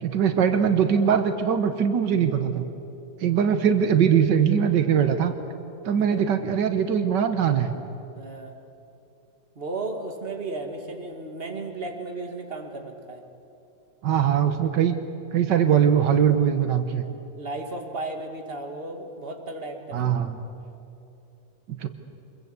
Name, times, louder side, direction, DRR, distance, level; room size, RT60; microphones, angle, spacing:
voice 1, 0.0-2.7 3.2-5.3 5.9-7.7 14.0-15.0 15.3-17.0 19.9-20.4 21.8-21.9, right 8 dB, 85° right, 8 dB, 1.8 m, -21 dB
voice 2, 8.1-8.5 9.6-13.2 17.4-20.1, right 2 dB, 35° right, 3 dB, 2.4 m, -34 dB
26.0 x 22.0 x 8.2 m, 2.8 s
omnidirectional pair, 1.9 m